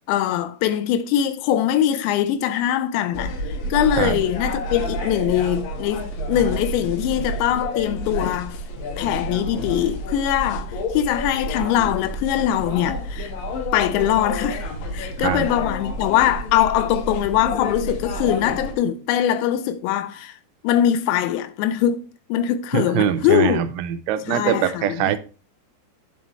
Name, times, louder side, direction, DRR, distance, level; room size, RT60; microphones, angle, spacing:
voice 1, 0.1-8.6 9.0-13.3 13.7-20.4 20.6-23.6 24.3-25.2, left 11 dB, 80° left, 2.9 m, -22 dB
sound 1, 3.1-18.7, equal, 60° left, 2.7 m, -29 dB
voice 2, 22.7-25.2, right 11 dB, 90° right, 3.1 m, -23 dB
8.9 x 7.3 x 3.1 m
omnidirectional pair, 5.3 m